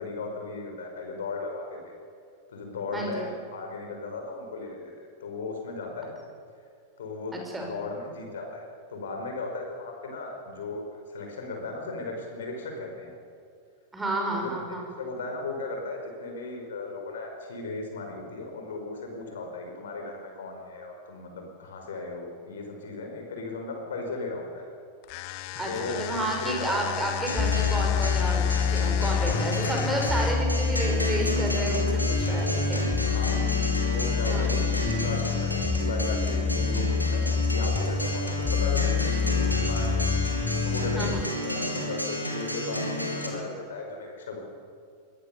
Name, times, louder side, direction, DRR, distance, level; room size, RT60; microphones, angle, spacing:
voice 1, 0.0-1.9 2.5-4.9 5.2-6.1 7.0-10.8 11.1-13.1 14.3-14.6 15.0-24.7 25.6-26.0 26.4-26.7 29.2-29.5 33.1-33.4 33.8-39.9 40.6-44.4, left 3 dB, 60° left, 3 dB, 5.0 m, -36 dB
voice 2, 2.9-3.3 7.3-7.7 13.9-14.8 25.5-32.9 34.3-34.5 38.4-38.5 40.9-41.2, right 2 dB, 10° right, 0 dB, 6.0 m, -31 dB
sound 1, 25.0-30.6, left 18 dB, 45° left, 0.7 m, -35 dB
Acoustic guitar, 27.3-43.3, equal, 90° left, 3.1 m, -32 dB
sound 2, 27.4-41.2, left 6 dB, 15° left, 0.9 m, -27 dB
22.0 x 17.5 x 6.8 m, 2.4 s
figure-of-eight pair, 90°, 0 cm